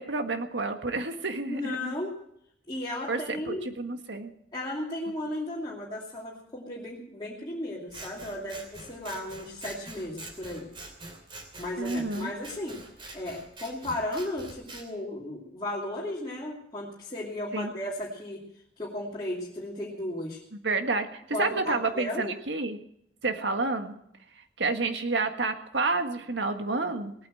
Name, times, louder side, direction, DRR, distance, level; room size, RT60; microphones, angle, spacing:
voice 1, 0.0-1.9 3.1-4.3 11.8-12.3 17.5-17.7 20.5-22.8 23.2-24.0 24.6-27.1, right 3 dB, 80° right, 6 dB, 1.7 m, -29 dB
voice 2, 1.4-2.1 2.7-3.6 4.5-10.7 11.6-12.8 13.1-18.4 18.8-20.4 21.3-22.3, left 1 dB, 25° left, -6 dB, 2.8 m, -35 dB
Scissors, 7.9-14.9, right 2 dB, 30° right, 2.9 m, -45 dB
18.5 x 9.1 x 7.8 m, 0.73 s
head